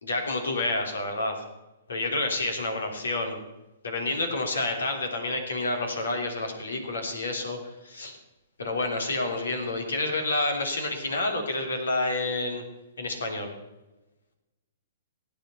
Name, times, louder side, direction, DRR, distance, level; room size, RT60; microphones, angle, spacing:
voice 1, 0.0-1.4 1.9-3.4 3.8-8.2 8.6-12.6 13.0-13.5, left 2 dB, 75° left, 4 dB, 3.2 m, -29 dB
17.0 x 9.1 x 5.7 m, 1.0 s
figure-of-eight pair, 120°, 0 cm